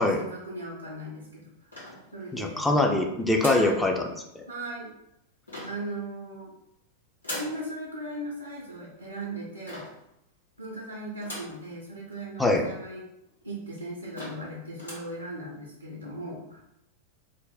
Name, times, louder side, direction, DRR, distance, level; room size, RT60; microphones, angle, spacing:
voice 1, 0.0-1.7 2.1-2.7 3.5-3.8 4.5-4.9 5.6-6.5 7.3-9.9 10.6-13.0 13.4-16.6, right 1 dB, 85° right, -3 dB, 0.5 m, -38 dB
sound 1, 1.7-2.5 3.4-3.8 5.5-5.9 7.2-7.6 9.7-10.0 11.2-11.6 12.1-12.2 12.4-12.5 13.3-13.4 13.8-13.9 14.1-14.5 14.8-15.1, left 1 dB, 80° left, 1.1 m, -39 dB
voice 2, 2.3-4.0 4.4-4.5 12.4-12.6, left 2 dB, 5° left, 2 dB, 0.4 m, -23 dB
2.6 x 2.0 x 3.9 m, 0.80 s
figure-of-eight pair, 90°, 0 cm